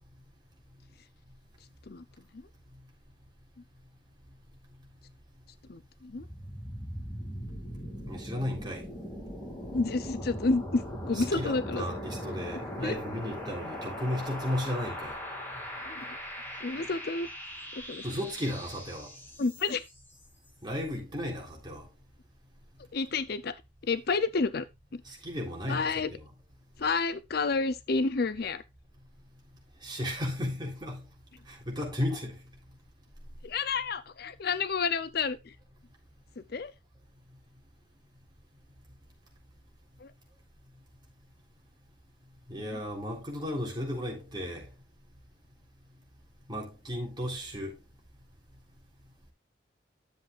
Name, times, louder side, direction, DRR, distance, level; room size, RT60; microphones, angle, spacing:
voice 1, 5.7-6.2 9.7-11.8 12.8-12.9 15.9-16.0 16.6-17.3 17.9-18.0 19.4-19.8 22.9-23.5 23.9-24.6 24.9-25.0 25.7-26.1 26.8-28.6 33.4-35.4 36.5-36.7 40.0-40.1, left 4 dB, 60° left, 0.6 m, -29 dB
sound 1, 6.2-20.0, equal, 10° left, 2.9 m, -40 dB
voice 2, 8.1-8.9 11.1-15.1 18.0-19.1 20.6-21.9 25.1-26.3 29.8-31.0 31.5-32.4 42.5-44.7 46.5-47.8, left 1 dB, 25° right, 3.6 m, -34 dB
11.0 x 7.6 x 2.5 m
head